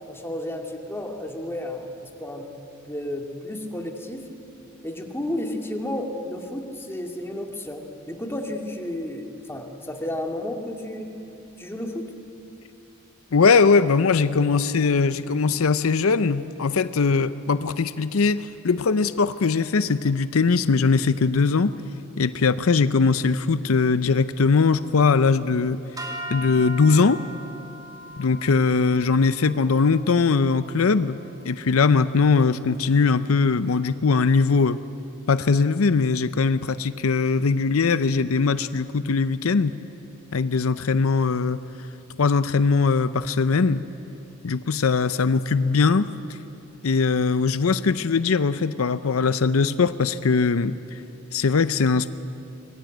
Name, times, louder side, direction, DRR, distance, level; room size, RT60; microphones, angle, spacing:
voice 1, 0.1-2.5 2.8-4.3 4.8-11.1 11.6-12.1, left 1 dB, 10° left, 2 dB, 2.3 m, -32 dB
voice 2, 13.3-21.7 22.2-25.8 26.3-27.2 28.2-31.2 31.4-34.8 35.3-39.8 40.3-41.6 42.2-43.9 44.4-46.1 46.8-50.7 51.3-52.1, left 4 dB, 80° left, 14 dB, 0.6 m, -20 dB
sound 1, 26.0-32.3, equal, 20° right, 2.5 m, -40 dB
24.5 x 21.0 x 9.1 m, 2.9 s
head